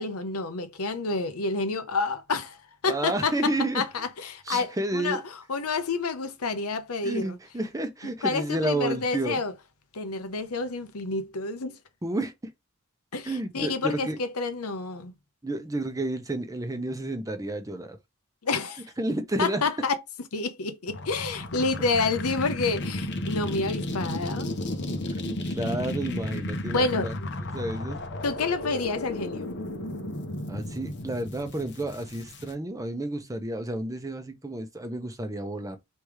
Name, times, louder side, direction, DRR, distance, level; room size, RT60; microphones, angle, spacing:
voice 1, 0.0-2.6 2.8-3.3 3.7-5.2 5.5-7.4 8.2-9.5 9.9-11.8 13.1-15.1 18.4-18.8 19.4-19.9 20.3-24.5 26.6-27.3 28.2-29.6, left 3 dB, 90° left, 0.8 m, -29 dB
voice 2, 2.9-3.8 4.4-5.2 7.0-9.4 12.0-12.5 13.2-14.2 15.4-18.0 19.0-19.6 25.2-27.1 27.5-28.0 30.5-35.8, right 1 dB, 15° right, 0.8 m, -31 dB
sound 1, 20.9-32.5, left 1 dB, 55° left, 0.9 m, -33 dB
3.4 x 3.1 x 4.8 m
head